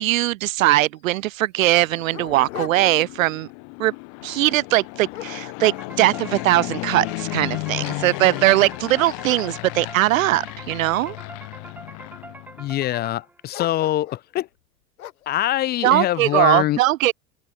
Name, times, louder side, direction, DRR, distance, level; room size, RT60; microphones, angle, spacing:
voice 1, 0.0-3.5 3.8-3.9 4.2-11.2 15.8-17.1, right 16 dB, 65° right, 0.5 m, -20 dB
Dog, 0.6-0.7 1.0-1.1 1.7-3.3 3.7-4.0 4.6-6.1 6.5-7.5 8.0-8.1 8.6-10.9 11.6-12.2 13.5-14.3 15.0-15.4, left 13 dB, 70° left, 0.9 m, -41 dB
Fixed-wing aircraft airplane, 1.7-12.8, left 38 dB, 45° left, 1.1 m, -34 dB
sound 1, 5.7-13.5, right 2 dB, 5° right, 0.9 m, -43 dB
voice 2, 12.6-14.5 15.3-16.8, left 14 dB, 25° left, 0.5 m, -23 dB
figure-of-eight pair, 80°, 45 cm